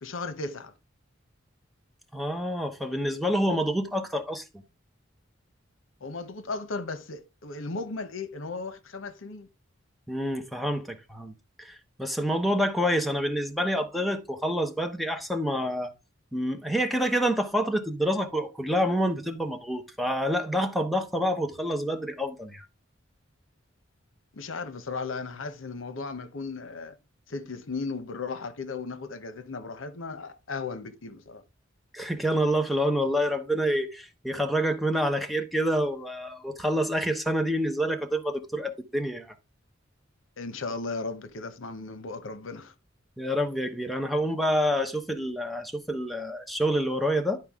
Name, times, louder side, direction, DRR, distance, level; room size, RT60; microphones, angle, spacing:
voice 1, 0.0-0.7 6.0-9.5 24.3-27.0 27.3-31.4 40.4-42.7, left 3 dB, 75° left, 0.9 m, -36 dB
voice 2, 2.1-4.4 10.1-11.3 11.6-15.9 16.3-22.6 31.9-39.3 43.2-47.4, equal, ahead, 0.9 m, -27 dB
11.0 x 4.7 x 3.6 m
head